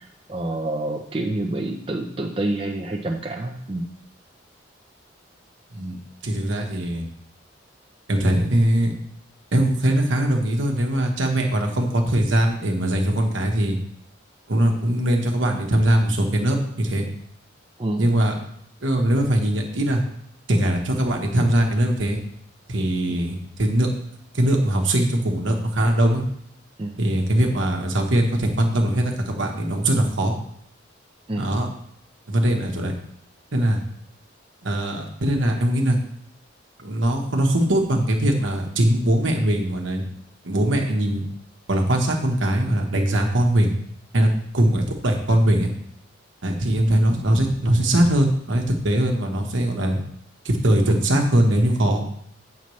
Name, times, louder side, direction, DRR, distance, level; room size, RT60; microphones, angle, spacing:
voice 1, 0.0-3.9 17.8-18.0 23.1-23.2 26.8-27.0 31.3-31.5, right 1 dB, 30° right, 2 dB, 0.5 m, -28 dB
voice 2, 6.2-7.0 8.1-8.9 9.5-13.8 14.5-17.1 18.0-18.3 18.8-20.0 20.5-22.2 22.7-23.9 24.3-26.2 27.0-30.3 31.4-31.7 32.3-32.9 33.5-33.8 34.6-36.0 36.8-40.0 40.4-41.2 41.7-43.7 44.1-45.7 46.4-50.0 50.4-52.0, right 1 dB, 75° right, 2 dB, 1.2 m, -21 dB
8.4 x 5.8 x 3.1 m, 0.68 s
head